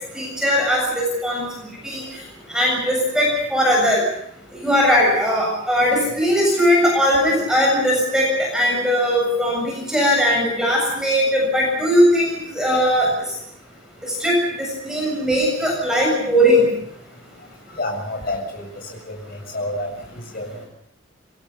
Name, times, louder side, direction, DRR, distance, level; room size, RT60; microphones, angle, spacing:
voice 1, 0.1-1.4 1.8-2.0 2.5-4.0 4.6-13.3 14.2-16.7, equal, 5° right, -2 dB, 7.3 m, -19 dB
voice 2, 17.7-18.7 19.1-19.9 20.3-20.7, left 1 dB, 50° left, 2 dB, 7.1 m, -28 dB
26.5 x 22.5 x 5.6 m, 0.73 s
head